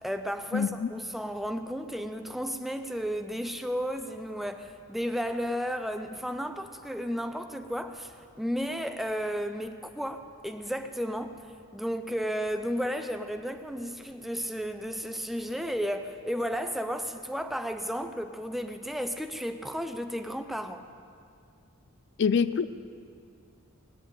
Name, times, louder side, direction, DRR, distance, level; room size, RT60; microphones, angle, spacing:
voice 1, 0.0-11.4 11.7-20.9, equal, ahead, 7 dB, 0.5 m, -33 dB
voice 2, 0.5-0.9 22.2-22.7, left 6 dB, 55° left, 14 dB, 0.4 m, -25 dB
18.5 x 7.8 x 8.6 m, 2.4 s
head